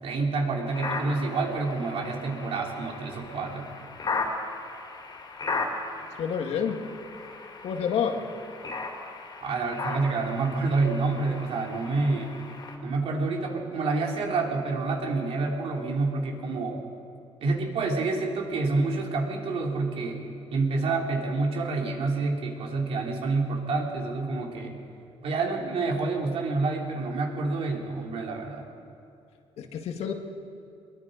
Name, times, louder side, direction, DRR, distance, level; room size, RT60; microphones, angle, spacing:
voice 1, 0.0-3.7 9.4-12.4 12.8-16.8 17.4-20.2 20.5-24.8 25.2-28.7, right 3 dB, 65° right, 0 dB, 3.3 m, -28 dB
sound 1, 0.7-12.8, left 3 dB, 40° left, 3.3 m, -37 dB
voice 2, 6.2-6.9 7.6-8.3 29.6-30.1, left 7 dB, 75° left, 4 dB, 1.9 m, -28 dB
23.0 x 22.0 x 5.1 m, 2.6 s
cardioid pair, 120°, 11 cm